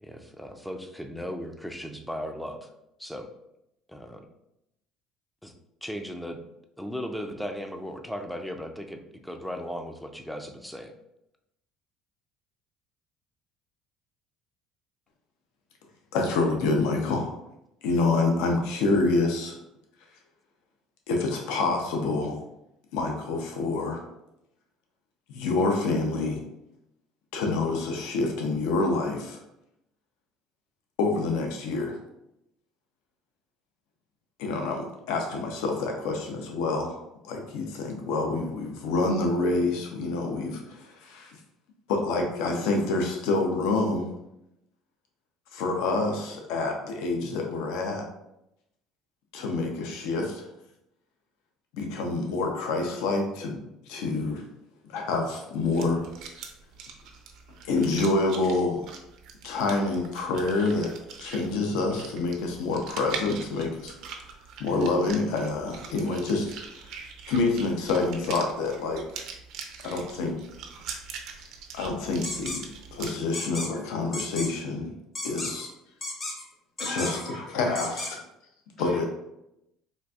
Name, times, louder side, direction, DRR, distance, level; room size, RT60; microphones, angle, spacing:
voice 1, 0.0-2.7 3.0-3.3 3.9-4.3 5.4-5.5 5.8-6.4 6.8-10.9, equal, ahead, 5 dB, 0.3 m, -36 dB
voice 2, 16.1-17.3 17.8-19.6 21.1-22.4 22.9-24.0 25.3-26.4 27.3-29.4 31.0-32.0 34.4-41.4 41.9-44.1 45.5-48.1 49.3-50.5 51.7-53.6 53.9-54.4 54.9-56.0 57.6-58.9 59.4-60.9 61.2-64.2 64.6-66.5 67.3-69.0 69.8-70.4 71.7-72.6 72.9-74.9 75.2-75.7 76.9-77.2 77.5-78.1 78.8-79.1, left 3 dB, 80° left, 2 dB, 0.5 m, -27 dB
sound 1, 55.6-73.1, right 6 dB, 65° right, 0.5 m, -43 dB
sound 2, 72.2-72.6 73.3-73.7 74.1-74.5 75.2-75.7 76.0-76.4 76.8-77.3 77.8-78.1, left 2 dB, 30° left, 0.7 m, -34 dB
voice 3, 76.8-78.2 78.8-79.0, left 1 dB, 50° left, 0 dB, 1.0 m, -38 dB
3.9 x 2.4 x 2.3 m, 0.84 s
cardioid pair, 110°, 0 cm